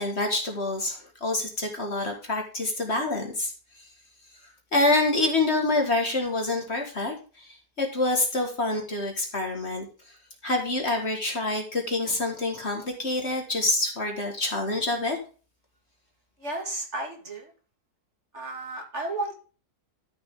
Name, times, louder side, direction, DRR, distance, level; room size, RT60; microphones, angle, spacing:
voice 1, 0.0-3.8 4.7-9.9 10.4-15.2, left 2 dB, 40° left, 2 dB, 2.1 m, -27 dB
voice 2, 16.4-17.5 18.3-19.3, right 2 dB, 45° right, 2 dB, 2.4 m, -33 dB
12.5 x 6.9 x 3.8 m, 0.36 s
omnidirectional pair, 1.8 m